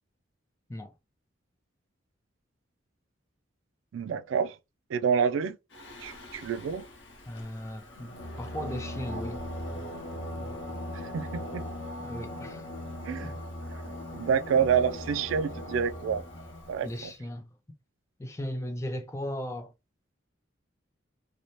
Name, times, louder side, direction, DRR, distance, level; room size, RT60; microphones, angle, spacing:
voice 1, 3.9-4.6 4.9-5.6 6.0-6.9 10.9-11.6 13.0-13.3 14.1-16.2 16.7-17.1, right 7 dB, 80° right, 0.3 m, -28 dB
Singing, 5.7-17.0, left 1 dB, 70° left, 0.9 m, -39 dB
voice 2, 7.3-9.4 12.0-12.7 13.2-13.4 16.8-17.5 18.2-19.7, equal, 15° left, 0.3 m, -37 dB
2.7 x 2.0 x 3.0 m
head